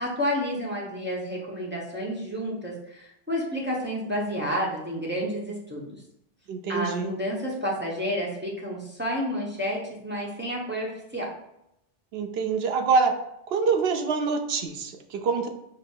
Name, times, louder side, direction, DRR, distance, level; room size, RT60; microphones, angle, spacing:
voice 1, 0.0-6.0 6.7-11.3, equal, 10° right, -4 dB, 0.8 m, -30 dB
voice 2, 6.5-7.1 12.1-13.1 13.5-15.5, right 5 dB, 70° right, 5 dB, 0.8 m, -25 dB
5.1 x 2.0 x 4.4 m, 0.81 s
omnidirectional pair, 1.1 m